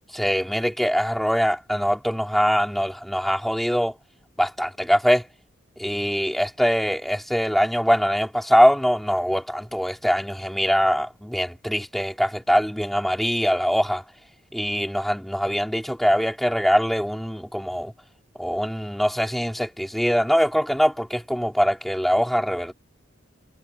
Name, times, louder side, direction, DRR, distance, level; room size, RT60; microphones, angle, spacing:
voice 1, 0.1-3.9 4.4-5.2 5.8-14.0 14.5-17.9 18.4-22.7, equal, ahead, 4.5 m, -22 dB
head